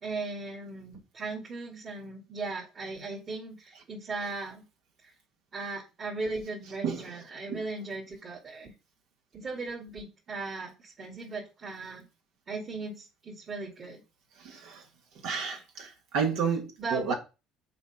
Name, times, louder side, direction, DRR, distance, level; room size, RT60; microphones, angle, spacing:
voice 1, 0.0-4.6 5.0-5.1 5.5-8.7 9.3-12.1 12.5-14.0 16.8-17.1, right 3 dB, 40° right, 2.5 m, -37 dB
voice 2, 14.4-14.8 15.2-17.1, right 6 dB, 70° right, 1.9 m, -31 dB
7.0 x 4.4 x 5.0 m
hypercardioid pair, 65°, 0 cm